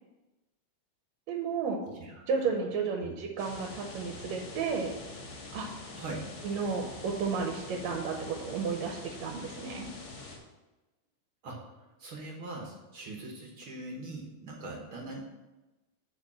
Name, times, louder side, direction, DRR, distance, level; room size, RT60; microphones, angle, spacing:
voice 1, 1.3-1.8 2.3-5.0 5.5-5.7 6.4-9.9, right 5 dB, 70° right, 2 dB, 2.1 m, -32 dB
voice 2, 1.9-2.6 3.0-3.2 5.9-6.3 11.4-15.4, right 2 dB, 55° right, 0 dB, 1.7 m, -42 dB
sound 1, 3.4-10.4, left 3 dB, 60° left, 2.8 m, -45 dB
8.1 x 4.8 x 7.2 m, 1.1 s
omnidirectional pair, 3.5 m